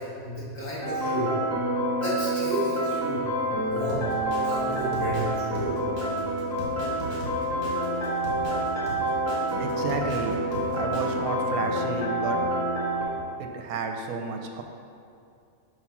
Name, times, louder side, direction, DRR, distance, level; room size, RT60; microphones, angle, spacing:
voice 1, 0.2-1.4 1.9-4.1 4.4-5.8, right 1 dB, 35° left, -8 dB, 2.0 m, -32 dB
sound 1, 0.8-13.0, right 1 dB, 10° left, 1.0 m, -28 dB
Drum kit, 3.9-11.2, left 1 dB, 75° left, 1.7 m, -38 dB
voice 2, 9.6-10.4 10.7-12.4 13.4-14.6, right 4 dB, 85° right, 4 dB, 1.1 m, -31 dB
5.5 x 4.8 x 5.9 m, 2.4 s
omnidirectional pair, 1.5 m